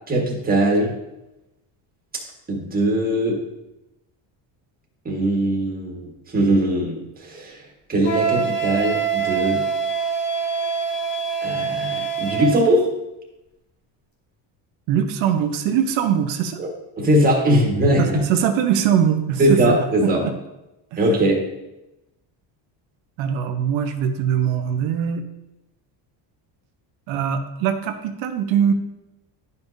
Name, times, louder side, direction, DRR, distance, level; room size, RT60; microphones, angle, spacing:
voice 1, 0.1-0.9 2.5-3.4 5.0-7.6 7.9-9.6 11.4-12.9 16.6-16.7 17.0-18.2 19.4-20.3 21.0-21.4, right 1 dB, 20° right, -1 dB, 1.6 m, -20 dB
Wind instrument woodwind instrument, 8.0-12.6, right 6 dB, 65° left, 2.0 m, -24 dB
voice 2, 14.9-16.6 18.0-19.8 20.2-20.3 20.9-21.0 23.2-25.2 27.1-28.7, right 8 dB, 80° right, 6 dB, 1.0 m, -22 dB
11.0 x 5.4 x 2.7 m, 0.95 s
cardioid pair, 155°, 45 cm